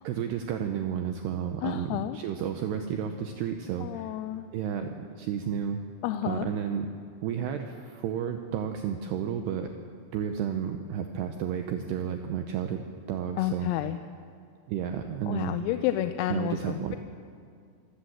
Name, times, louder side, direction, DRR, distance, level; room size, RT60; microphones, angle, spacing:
voice 1, 0.0-4.2 4.5-5.8 6.2-6.9 7.2-9.7 10.1-12.8 13.1-13.7 14.7-15.6 16.3-17.0, right 8 dB, 85° right, 6 dB, 2.4 m, -32 dB
voice 2, 1.6-2.2 3.8-4.5 6.0-6.5 13.4-14.0 15.3-17.0, left 12 dB, 90° left, 9 dB, 3.4 m, -30 dB
25.0 x 15.0 x 7.8 m, 2.2 s
omnidirectional pair, 6.0 m